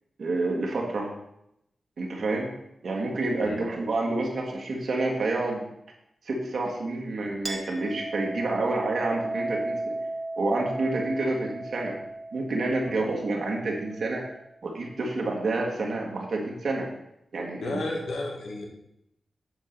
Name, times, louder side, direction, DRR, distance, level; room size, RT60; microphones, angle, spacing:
voice 1, 0.2-1.1 2.0-2.5 2.8-5.6 6.2-9.9 10.4-12.0 12.3-14.2 14.6-16.9 17.3-17.8, right 2 dB, 70° right, -1 dB, 1.5 m, -28 dB
Chink clink, 7.4-14.5, right 2 dB, 40° right, 0.9 m, -35 dB
voice 2, 17.6-18.6, left 2 dB, 85° left, 0 dB, 1.7 m, -32 dB
8.1 x 3.6 x 6.6 m, 0.80 s
cardioid pair, 55°, 0 cm